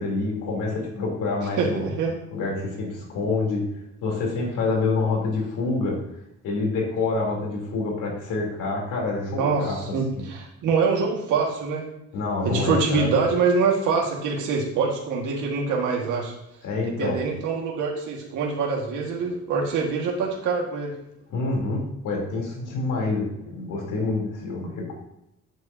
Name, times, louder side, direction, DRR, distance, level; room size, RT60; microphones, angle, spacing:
voice 1, 0.0-1.9 2.3-3.6 4.0-6.0 6.4-9.8 12.1-13.1 16.6-17.2 21.3-24.9, left 3 dB, 90° left, -1 dB, 3.4 m, -27 dB
voice 2, 1.6-2.1 9.3-11.9 12.4-16.3 17.0-20.9, right 4 dB, 85° right, -2 dB, 1.8 m, -24 dB
9.5 x 7.9 x 2.8 m, 0.85 s
cardioid pair, 90°, 30 cm